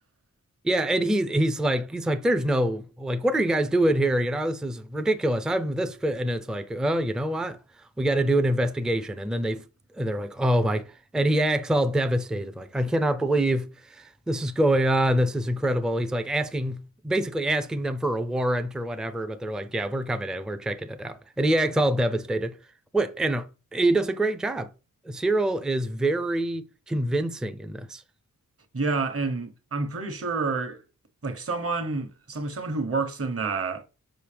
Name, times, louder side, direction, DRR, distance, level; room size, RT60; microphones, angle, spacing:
voice 1, 0.6-7.6 8.0-9.6 10.0-22.6 22.9-24.7 25.1-28.0, right 1 dB, ahead, 0.4 m, -25 dB
voice 2, 28.7-30.8 31.2-33.8, right 4 dB, 45° right, 1.1 m, -29 dB
6.2 x 5.2 x 3.4 m
wide cardioid pair, 105°, 33 cm